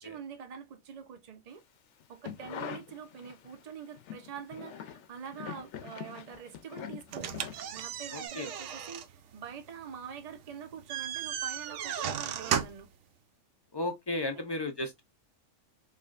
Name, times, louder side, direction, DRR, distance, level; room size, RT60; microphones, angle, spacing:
voice 1, 0.0-1.6 2.1-7.4 7.7-12.9 14.2-14.4, right 7 dB, 40° right, 0.6 m, -45 dB
sound 1, 2.0-3.6 3.9-8.0 8.3-8.4, left 9 dB, 70° left, 0.9 m, -43 dB
sound 2, 7.1-12.9, right 9 dB, 75° right, 0.9 m, -36 dB
voice 2, 8.1-8.5 13.7-15.0, left 2 dB, 40° left, 0.3 m, -34 dB
4.8 x 2.3 x 2.4 m
omnidirectional pair, 1.3 m